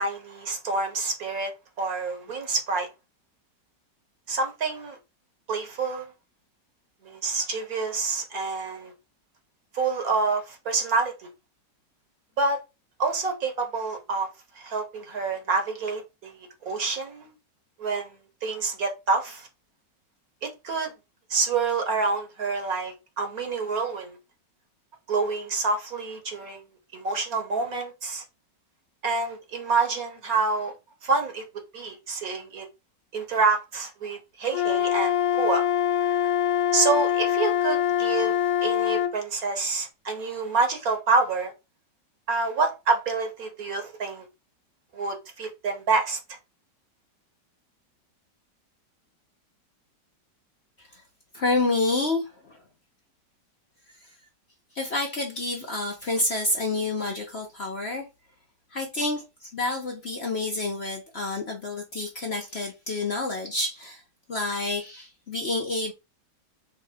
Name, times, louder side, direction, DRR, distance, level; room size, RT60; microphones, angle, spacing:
voice 1, 0.0-2.9 4.3-5.0 5.5-6.1 7.0-8.9 9.7-11.3 12.4-12.6 13.0-14.3 14.5-17.3 17.8-18.2 18.4-19.5 20.4-20.9 21.3-24.2 25.1-26.6 26.9-28.2 29.0-30.7 31.0-31.4 31.7-32.7 33.1-35.6 36.0-36.1 36.7-38.3 38.6-41.5 42.3-44.3 44.9-46.2, right 4 dB, 55° right, 1.6 m, -27 dB
Wind instrument woodwind instrument, 34.5-39.2, left 10 dB, 90° left, 1.4 m, -24 dB
voice 2, 51.3-52.6 54.0-54.1 54.7-58.0 58.7-64.0 64.3-65.9, left 2 dB, 45° left, 1.0 m, -29 dB
4.6 x 3.3 x 3.5 m
omnidirectional pair, 2.0 m